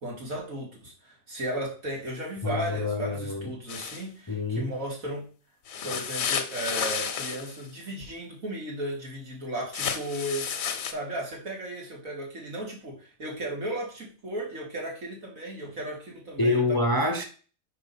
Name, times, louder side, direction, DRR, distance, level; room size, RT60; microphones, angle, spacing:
voice 1, 0.0-5.3 5.8-10.5 10.9-16.8, right 1 dB, 85° right, 2.9 m, -35 dB
voice 2, 2.4-3.5 4.3-4.7 16.4-17.2, left 2 dB, 25° left, 0.4 m, -26 dB
sound 1, 3.7-4.0 5.7-7.6 9.7-10.9, left 7 dB, 80° left, 1.2 m, -31 dB
5.1 x 4.6 x 5.5 m
omnidirectional pair, 1.4 m